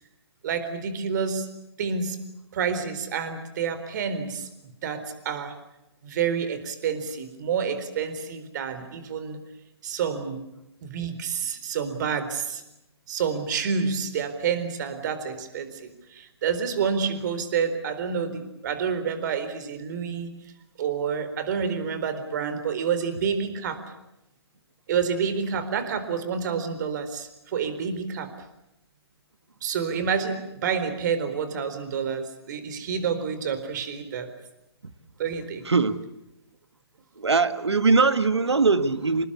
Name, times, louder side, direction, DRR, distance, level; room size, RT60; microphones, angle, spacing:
voice 1, 0.4-1.5 1.8-2.2 2.5-4.5 4.8-5.5 6.0-9.4 9.8-10.5 10.8-12.6 13.1-20.3 20.8-23.9 24.9-28.3 29.6-34.3 35.2-35.7, right 6 dB, 45° right, 10 dB, 4.1 m, -28 dB
voice 2, 35.7-36.0 37.2-39.3, right 4 dB, 85° right, 12 dB, 1.8 m, -21 dB
27.0 x 20.5 x 8.6 m, 0.89 s
figure-of-eight pair, 135°, 14 cm